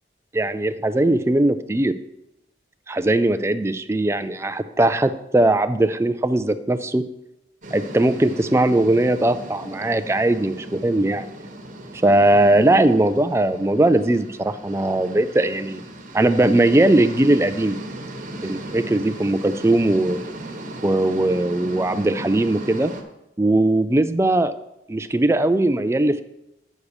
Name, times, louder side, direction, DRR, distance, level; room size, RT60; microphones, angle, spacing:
voice 1, 0.3-2.0 2.9-7.0 7.7-11.3 12.0-15.8 16.1-17.8 18.4-20.2 20.8-22.9 23.4-24.5 24.9-26.2, right 1 dB, 15° right, 10 dB, 0.3 m, -19 dB
sound 1, 7.6-23.0, right 1 dB, 45° right, 1.2 m, -37 dB
8.5 x 6.5 x 4.8 m, 0.89 s
head